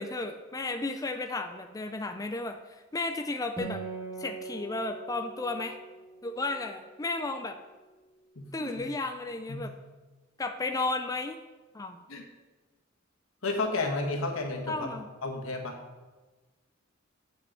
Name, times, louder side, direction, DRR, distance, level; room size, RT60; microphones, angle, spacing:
voice 1, 0.0-2.6 2.9-3.8 4.2-5.8 6.2-7.6 8.5-9.7 10.4-11.4 11.7-12.0 14.7-15.1, left 2 dB, 15° left, 6 dB, 0.4 m, -33 dB
Acoustic guitar, 3.6-7.3, right 3 dB, 10° right, 1.5 m, -42 dB
voice 2, 8.3-8.9 9.5-9.7 12.1-12.2 13.4-15.8, left 2 dB, 85° left, 2 dB, 1.5 m, -32 dB
7.8 x 5.4 x 7.4 m, 1.3 s
head